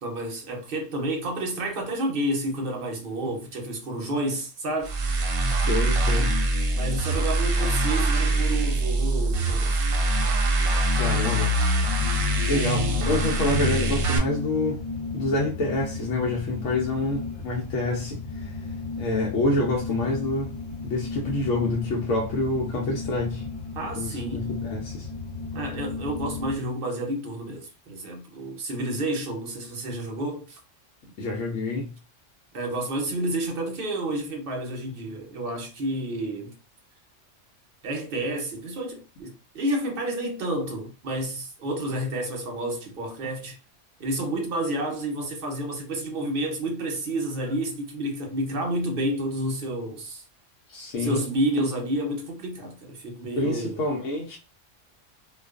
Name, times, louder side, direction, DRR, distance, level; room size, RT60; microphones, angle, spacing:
voice 1, 0.0-4.9 6.7-9.9 23.7-24.5 25.5-30.6 32.5-36.6 37.8-43.6 44.0-50.2 51.0-53.8, right 1 dB, 55° right, 0.7 m, -30 dB
sound 1, 4.8-14.2, right 1 dB, 90° right, 1.0 m, -23 dB
voice 2, 5.6-6.3 11.0-11.8 12.5-14.8 15.1-18.7 19.0-20.5 20.8-23.4 24.0-25.1 31.2-31.9 50.7-51.2 53.4-54.4, left 2 dB, 85° left, 1.0 m, -27 dB
sound 2, 11.8-26.6, left 4 dB, 40° left, 0.5 m, -35 dB
2.4 x 2.3 x 2.3 m
omnidirectional pair, 1.3 m